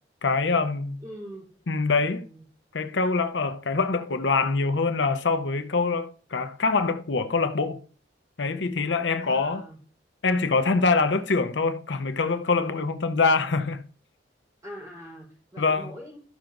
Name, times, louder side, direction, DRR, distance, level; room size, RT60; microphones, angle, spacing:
voice 1, 0.2-1.0 1.7-2.3 2.7-7.8 8.4-9.7 10.2-13.8 15.6-15.9, left 4 dB, 85° left, 0.7 m, -24 dB
voice 2, 1.0-1.5 2.0-2.5 9.2-9.8 14.6-16.2, equal, 20° right, 4.2 m, -43 dB
14.0 x 5.8 x 2.6 m
head